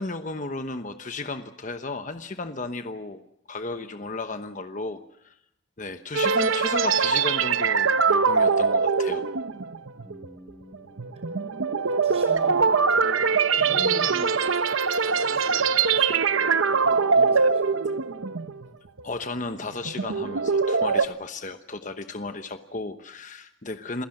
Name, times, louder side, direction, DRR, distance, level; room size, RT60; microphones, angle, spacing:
voice 1, 0.0-3.2 3.5-5.4 5.8-9.2 19.0-24.1, left 2 dB, 40° left, 8 dB, 1.0 m, -34 dB
sound 1, 6.1-18.7 19.0-19.2 19.7-21.1, right 5 dB, 85° right, 0.8 m, -22 dB
voice 2, 9.9-11.3 11.9-14.5 15.0-18.0, equal, 30° right, 6 dB, 6.1 m, -42 dB
27.5 x 16.5 x 7.8 m, 0.79 s
head